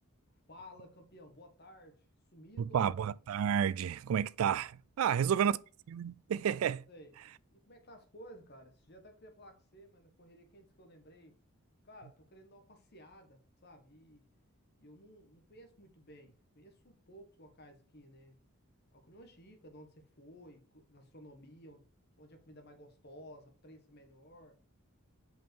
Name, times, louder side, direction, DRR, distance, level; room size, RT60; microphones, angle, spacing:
voice 1, 0.5-2.1 2.3-3.2 5.0-5.3 6.9-11.3 11.8-14.2 14.8-18.4 18.9-21.9 22.2-24.6, equal, 45° left, 1.4 m, -55 dB
voice 2, 2.7-5.6 5.9-6.8, right 8 dB, 70° right, 0.3 m, -31 dB
5.5 x 5.2 x 4.5 m
head